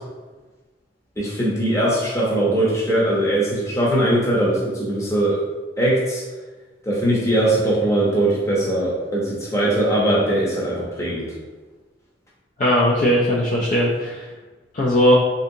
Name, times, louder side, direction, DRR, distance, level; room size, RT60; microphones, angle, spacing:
voice 1, 1.2-5.4 5.8-6.2 6.8-11.3, right 1 dB, 15° left, -5 dB, 0.7 m, -20 dB
voice 2, 12.6-14.2 14.7-15.1, equal, 45° left, -4 dB, 0.3 m, -18 dB
3.4 x 2.7 x 2.6 m, 1.3 s
head